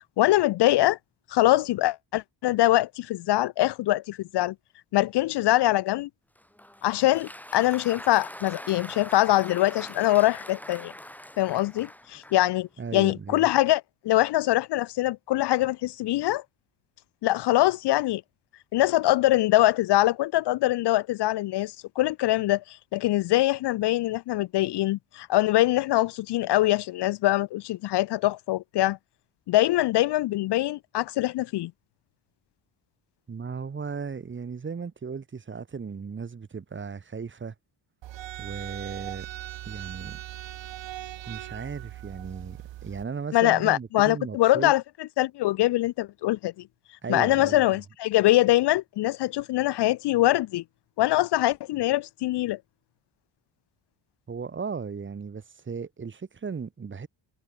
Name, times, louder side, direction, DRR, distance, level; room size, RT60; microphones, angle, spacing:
voice 1, 0.2-1.0 1.3-4.5 4.9-6.1 6.8-10.9 11.4-16.4 17.2-18.2 18.7-29.0 29.5-31.7 43.3-44.8 45.2-46.5 47.1-50.6 51.0-52.6, left 16 dB, 60° left, 0.5 m, -23 dB
Applause, 6.4-12.5, left 1 dB, 5° left, 3.8 m, -43 dB
voice 2, 12.8-13.5 33.3-37.5 38.4-39.3 39.6-40.2 41.3-44.7 47.0-47.8 54.3-57.1, right 5 dB, 25° right, 1.3 m, -36 dB
sound 1, 38.0-43.0, right 14 dB, 70° right, 1.1 m, -39 dB
cardioid pair, 135°, 45 cm